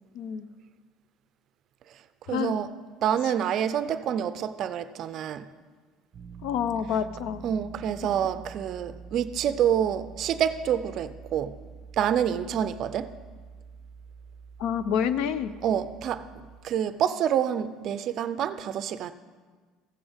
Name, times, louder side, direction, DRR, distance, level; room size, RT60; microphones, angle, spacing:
voice 1, 0.1-0.5 2.3-2.6 6.4-7.4 14.6-15.5, left 8 dB, 75° left, 0.5 m, -28 dB
voice 2, 2.3-2.7 3.0-5.5 7.4-11.6 11.9-13.1 15.6-16.3 16.6-19.1, right 9 dB, 45° right, 0.4 m, -27 dB
sound 1, 6.1-16.6, right 5 dB, 25° right, 0.8 m, -46 dB
15.0 x 7.1 x 3.5 m
cardioid pair, 145°, 0 cm